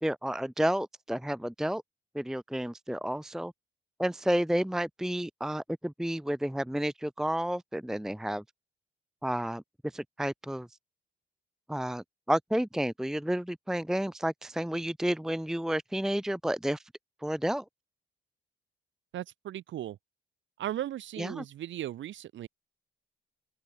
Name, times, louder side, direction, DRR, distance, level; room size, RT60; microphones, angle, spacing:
voice 1, 0.0-1.8 2.1-3.5 4.0-8.4 9.2-10.7 11.7-16.8 17.2-17.6 21.2-21.4, equal, ahead, 0.8 m, -31 dB
voice 2, 19.1-20.0 20.6-22.5, right 12 dB, 70° right, 1.4 m, -37 dB
cardioid pair, 90°, 20 cm